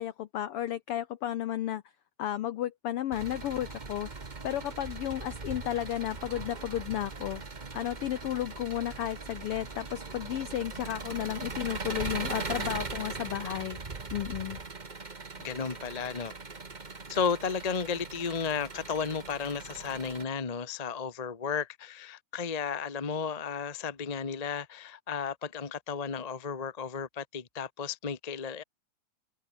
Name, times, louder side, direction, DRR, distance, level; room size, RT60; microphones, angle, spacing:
voice 1, 0.0-1.8 2.2-7.4 7.7-13.8 14.1-14.6, left 12 dB, 85° left, 1.2 m, -33 dB
Engine, 3.1-20.2, right 4 dB, 85° right, 0.4 m, -40 dB
voice 2, 15.4-16.3 17.1-28.6, left 6 dB, 45° left, 0.5 m, -33 dB
omnidirectional pair, 3.6 m